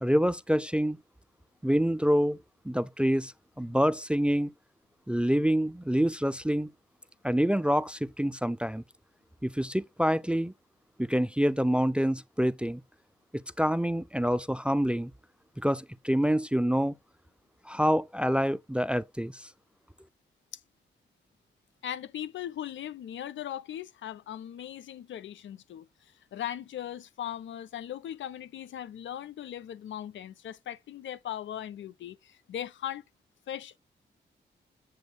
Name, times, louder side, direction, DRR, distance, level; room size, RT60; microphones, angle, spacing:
voice 1, 0.0-1.0 1.6-2.4 2.7-4.5 5.1-6.7 7.2-8.8 9.4-10.5 11.0-12.8 13.3-15.1 15.6-16.9 17.7-19.5, equal, 5° right, 0.4 m, -27 dB
voice 2, 21.8-33.0 33.5-33.8, left 10 dB, 70° left, 0.5 m, -39 dB
8.0 x 6.2 x 2.3 m
supercardioid pair, 45°, 20 cm